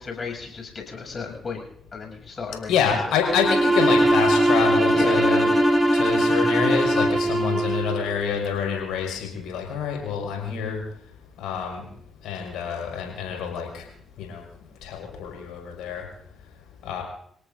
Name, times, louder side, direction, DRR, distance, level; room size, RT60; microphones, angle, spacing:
voice 1, 0.0-1.6 1.9-2.8 4.9-5.4, left 4 dB, 45° left, 2 dB, 7.5 m, -33 dB
voice 2, 2.7-5.5 5.9-10.8 11.4-11.8 12.2-13.8 14.2-14.4 14.8-16.0 16.8-17.0, left 7 dB, 80° left, 1 dB, 5.6 m, -27 dB
Bowed string instrument, 3.1-8.1, right 2 dB, 25° right, 7.2 m, -22 dB
Bowed string instrument 2, 3.4-7.4, left 2 dB, 20° left, 0.7 m, -24 dB
29.5 x 18.0 x 2.7 m, 0.68 s
supercardioid pair, 50°, 0 cm